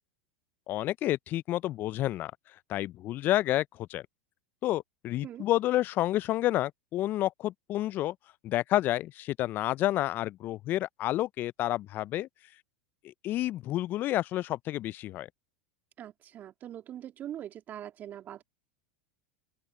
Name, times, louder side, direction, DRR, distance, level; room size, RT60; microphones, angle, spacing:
voice 1, 0.7-2.3 2.7-4.0 4.6-8.1 8.4-12.3 13.2-15.3, left 15 dB, 40° left, 0.4 m, -29 dB
voice 2, 16.0-18.4, right 11 dB, 40° right, 2.4 m, -42 dB
open air
hypercardioid pair, 90°, 5 cm